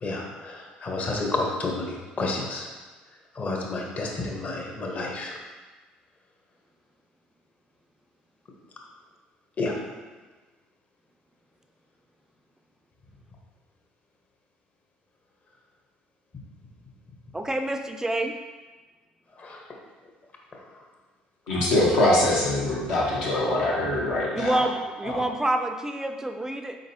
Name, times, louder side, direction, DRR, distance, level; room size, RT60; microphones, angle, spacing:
voice 1, 0.0-2.7 3.3-5.3 9.6-9.7 19.4-19.6 20.5-20.6, left 2 dB, 40° left, 0 dB, 0.9 m, -30 dB
voice 2, 17.3-18.4 24.3-26.8, right 1 dB, 15° right, 5 dB, 0.3 m, -27 dB
voice 3, 21.5-24.6 25.1-25.2, left 1 dB, 80° left, -6 dB, 1.2 m, -23 dB
4.2 x 3.9 x 2.7 m, 1.3 s
hypercardioid pair, 60°, 4 cm